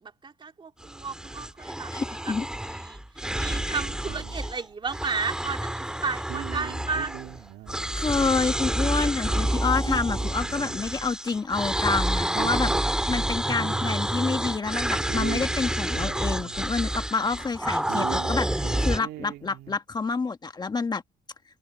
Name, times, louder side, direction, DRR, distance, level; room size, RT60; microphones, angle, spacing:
voice 1, 0.0-7.1, right 5 dB, 30° right, 2.3 m, -34 dB
sound 1, 0.8-4.6 4.9-7.4 7.7-19.0, right 1 dB, 5° right, 1.7 m, -29 dB
voice 2, 1.9-2.5 7.9-21.0, left 4 dB, 25° left, 1.4 m, -28 dB
sound 2, 3.4-5.0 5.5-5.6 6.1-8.0 8.3-8.4 8.9-9.0 9.2-12.0 12.3-14.4 14.7-14.8 15.0-17.5 17.8-19.8, right 14 dB, 75° right, 1.9 m, -41 dB
cardioid pair, 110°, 17 cm